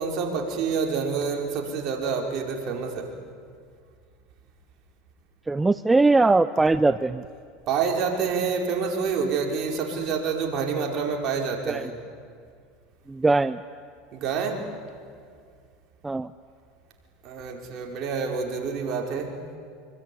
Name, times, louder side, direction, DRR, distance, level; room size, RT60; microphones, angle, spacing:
voice 1, 0.0-3.1 7.7-11.9 14.1-14.7 17.2-19.3, right 5 dB, 50° right, 1 dB, 4.9 m, -27 dB
voice 2, 5.5-7.2 11.7-11.9 13.1-13.6 16.0-16.3, right 3 dB, 15° right, 13 dB, 0.6 m, -21 dB
25.5 x 23.0 x 10.0 m, 2.2 s
supercardioid pair, 105°, 0 cm